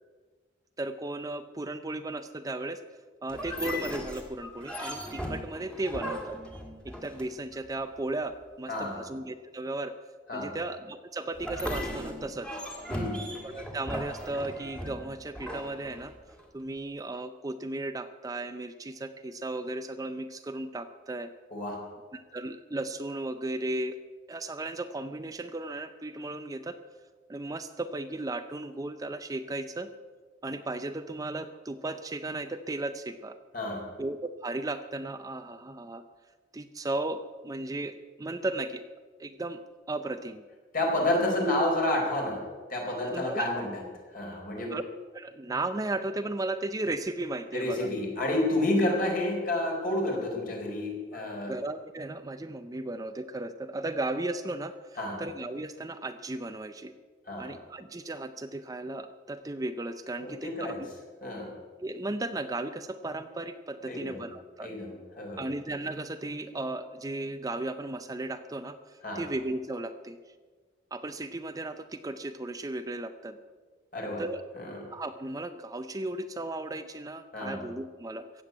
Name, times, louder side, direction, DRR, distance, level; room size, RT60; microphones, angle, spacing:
voice 1, 0.8-2.8 3.2-6.4 6.8-9.9 10.3-12.5 13.4-16.1 16.5-21.3 22.1-24.0 24.3-26.8 27.3-29.9 30.4-33.4 34.0-36.0 36.5-38.8 39.2-39.6 39.9-40.4 43.0-43.5 44.7-44.8 45.1-47.9 51.1-51.2 51.5-56.9 57.4-60.8 61.8-64.7 65.4-70.2 70.9-73.4 74.2-74.4 74.9-78.4, right 2 dB, 20° right, 10 dB, 0.5 m, -35 dB
sound 1, 3.3-7.6 11.3-16.4, equal, 5° left, 1.9 m, -37 dB
voice 2, 8.7-9.0 10.3-10.6 12.9-13.3 21.5-21.9 33.5-33.9 40.7-43.7 44.1-44.8 47.5-51.5 55.0-55.2 57.3-57.6 60.2-60.8 61.2-61.6 63.8-64.3 64.6-65.5 69.0-69.3 73.9-74.2 74.5-74.9 77.3-77.7, left 1 dB, 50° left, 0 dB, 4.1 m, -30 dB
16.0 x 7.9 x 9.3 m, 1.4 s
head